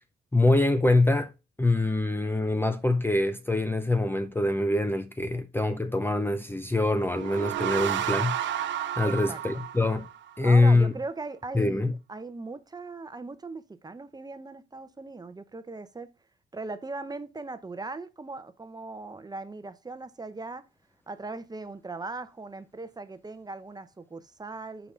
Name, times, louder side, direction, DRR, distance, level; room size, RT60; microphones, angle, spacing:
voice 1, 0.3-1.3 1.6-8.4 9.0-10.1 10.4-10.9 11.5-12.0, left 2 dB, 10° left, 0.6 m, -24 dB
sound 1, 7.0-10.5, right 10 dB, 70° right, 0.8 m, -31 dB
voice 2, 9.0-9.6 10.4-16.1 16.5-20.6 21.1-24.9, right 3 dB, 20° right, 0.8 m, -39 dB
5.4 x 4.9 x 5.1 m
cardioid pair, 90°, 20 cm